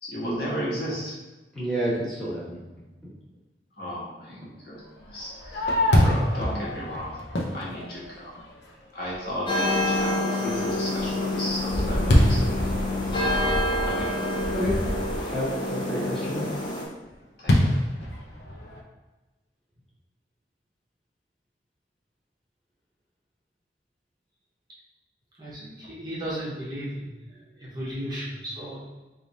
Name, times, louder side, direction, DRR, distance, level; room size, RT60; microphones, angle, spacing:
voice 1, 0.0-1.1 3.8-4.4 4.6-5.7 6.0-7.2 7.5-8.4 8.9-12.4 13.8-14.3 15.9-16.0 17.4-17.5, equal, 60° left, -7 dB, 1.2 m, -34 dB
voice 2, 1.5-2.6 4.4-4.5 14.5-16.5, equal, ahead, -10 dB, 1.2 m, -30 dB
Fireworks, 5.1-8.6 9.1-9.2 9.7-10.1 10.5-15.4 17.5-18.8, left 1 dB, 85° left, 0.6 m, -25 dB
sound 1, 9.5-16.8, left 1 dB, 25° left, 0.5 m, -27 dB
voice 3, 25.4-28.8, equal, 25° right, -7 dB, 0.8 m, -35 dB
3.2 x 2.5 x 3.9 m, 1.1 s
head